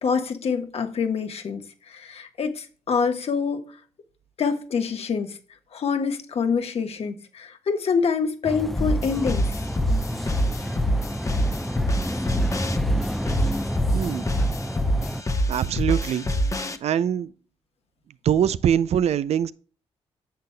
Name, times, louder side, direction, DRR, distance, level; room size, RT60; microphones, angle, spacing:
voice 1, 0.0-3.7 4.4-5.4 5.7-9.6, left 5 dB, 65° left, 1.3 m, -26 dB
sound 1, 8.4-15.2, equal, ahead, 0.5 m, -30 dB
sound 2, 8.8-16.8, equal, 30° left, 0.9 m, -25 dB
voice 2, 13.9-14.3 15.5-16.3 16.6-17.3 18.2-19.5, right 9 dB, 70° right, 0.5 m, -23 dB
10.0 x 6.9 x 2.2 m
cardioid pair, 65°, 11 cm